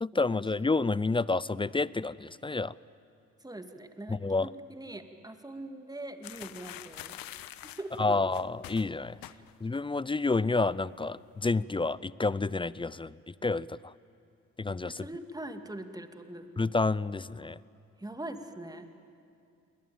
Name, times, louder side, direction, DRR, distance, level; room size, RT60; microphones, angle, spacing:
voice 1, 0.0-2.7 4.2-4.5 8.0-9.2 9.6-13.1 13.4-13.9 14.6-15.0 16.6-17.6, left 3 dB, 15° left, 21 dB, 0.5 m, -29 dB
voice 2, 3.4-7.2 7.5-8.2 9.3-9.4 14.9-16.5 17.4-17.6 18.0-19.1, right 1 dB, 10° right, 7 dB, 2.4 m, -42 dB
sound 1, 6.2-9.8 10.0-10.4 10.7-11.3, left 13 dB, 60° left, 1.1 m, -46 dB
28.5 x 21.0 x 9.0 m, 2.4 s
hypercardioid pair, 50°, 39 cm